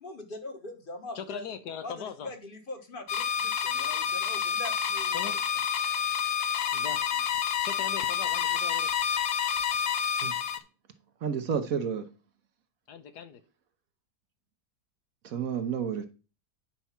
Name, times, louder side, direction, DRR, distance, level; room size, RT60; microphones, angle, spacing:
voice 1, 0.0-1.5 1.8-5.4 8.4-8.6, left 2 dB, 35° left, 1.4 m, -42 dB
voice 2, 1.1-2.3 5.1-5.4 6.7-7.0 7.6-9.0 12.9-13.4, left 8 dB, 80° left, 1.5 m, -40 dB
sound 1, 3.1-10.6, left 8 dB, 55° left, 0.7 m, -29 dB
voice 3, 11.2-12.0 15.3-16.1, right 7 dB, 60° right, 1.3 m, -30 dB
9.2 x 4.6 x 5.8 m
omnidirectional pair, 1.7 m